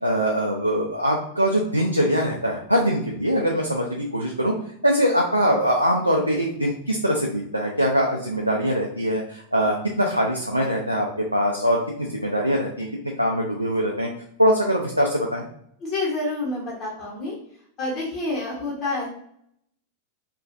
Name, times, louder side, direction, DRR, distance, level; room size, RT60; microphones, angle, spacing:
voice 1, 0.0-4.5 4.8-11.1 11.3-14.1 14.4-15.4, equal, 90° right, -1 dB, 0.3 m, -22 dB
voice 2, 15.8-17.4 17.8-19.1, left 2 dB, 40° left, -5 dB, 0.8 m, -28 dB
2.9 x 2.4 x 2.4 m, 0.68 s
figure-of-eight pair, 90°, 0 cm